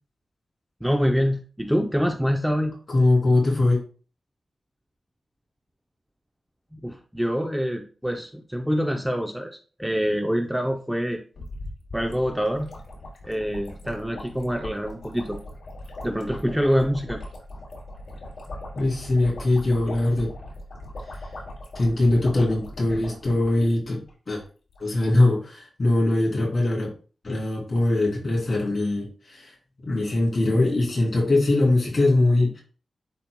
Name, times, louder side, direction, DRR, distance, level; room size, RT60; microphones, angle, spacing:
voice 1, 0.8-2.8 6.7-11.2 11.9-12.7 13.2-15.4 16.0-17.2, equal, 5° right, 3 dB, 0.5 m, -25 dB
voice 2, 2.9-3.8 18.8-20.3 21.7-24.0 24.3-24.4 24.8-26.9 27.2-29.5 29.8-32.6, left 2 dB, 35° left, -3 dB, 3.1 m, -21 dB
sound 1, 11.4-24.1 24.4-24.5 24.7-24.9, left 1 dB, 65° left, 2.7 m, -40 dB
10.5 x 4.5 x 2.2 m, 0.38 s
wide cardioid pair, 150°, 0 cm